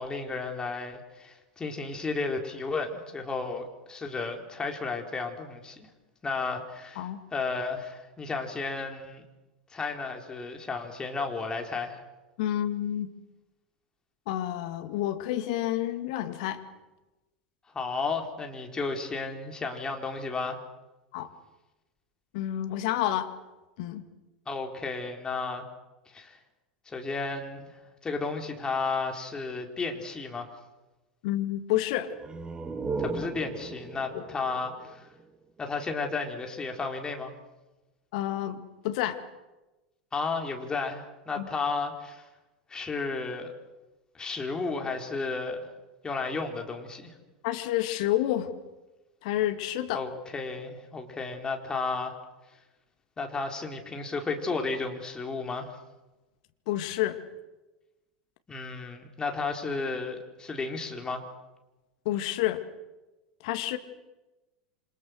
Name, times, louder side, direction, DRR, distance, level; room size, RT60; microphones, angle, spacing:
voice 1, 0.0-5.9 6.2-9.2 9.7-12.0 17.7-20.6 24.5-25.7 26.1-26.4 26.9-30.5 33.0-35.0 35.6-37.3 40.1-42.2 42.7-43.5 44.1-45.6 46.0-47.1 49.9-52.1 53.2-55.8 58.5-61.3, left 4 dB, 15° left, 3 dB, 4.4 m, -33 dB
voice 2, 12.4-13.1 14.3-16.6 21.1-21.3 22.3-23.3 23.8-24.0 31.2-32.1 34.1-34.2 38.1-39.2 41.4-41.5 47.4-48.5 49.2-50.0 56.7-57.2 62.1-62.6 63.4-63.8, left 13 dB, 55° left, 8 dB, 2.3 m, -29 dB
sound 1, 32.1-35.7, right 4 dB, 15° right, 1.9 m, -37 dB
28.0 x 26.5 x 6.6 m, 1.1 s
figure-of-eight pair, 85°, 5 cm